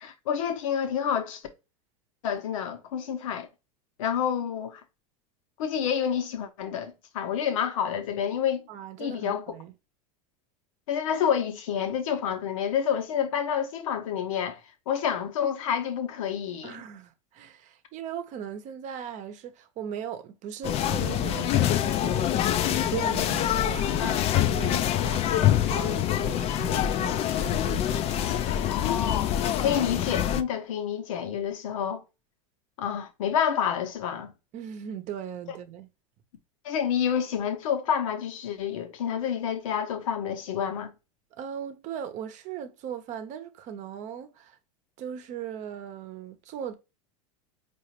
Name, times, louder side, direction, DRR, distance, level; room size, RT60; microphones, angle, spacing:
voice 1, 0.0-1.4 2.2-3.5 4.0-4.8 5.6-8.6 9.0-9.4 10.9-14.6 14.9-16.8 24.0-24.2 24.6-24.8 28.7-32.0 32.8-34.3 36.6-40.9, left 8 dB, 80° left, 0.9 m, -28 dB
voice 2, 8.7-9.7 16.6-28.3 29.6-29.8 34.5-35.9 41.3-44.6 45.0-46.7, right 9 dB, 45° right, 0.8 m, -38 dB
sound 1, 20.6-30.4, left 11 dB, 40° left, 0.4 m, -25 dB
4.8 x 2.5 x 3.0 m
hypercardioid pair, 105°, 17 cm